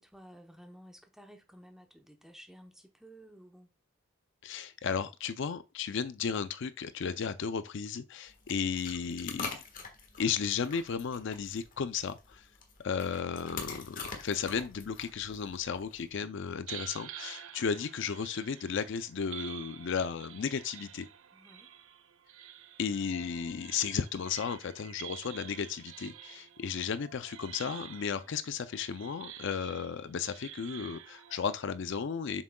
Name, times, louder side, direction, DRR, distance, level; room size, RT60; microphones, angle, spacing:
voice 1, 0.0-3.7 21.3-21.7, equal, ahead, 0.8 m, -54 dB
voice 2, 4.4-9.5 10.2-12.5 12.8-21.1 22.8-32.4, left 6 dB, 55° left, 0.4 m, -34 dB
sound 1, 8.3-16.1, left 4 dB, 40° left, 1.4 m, -45 dB
sound 2, 16.7-31.7, right 11 dB, 70° right, 0.5 m, -49 dB
7.4 x 6.1 x 2.2 m
head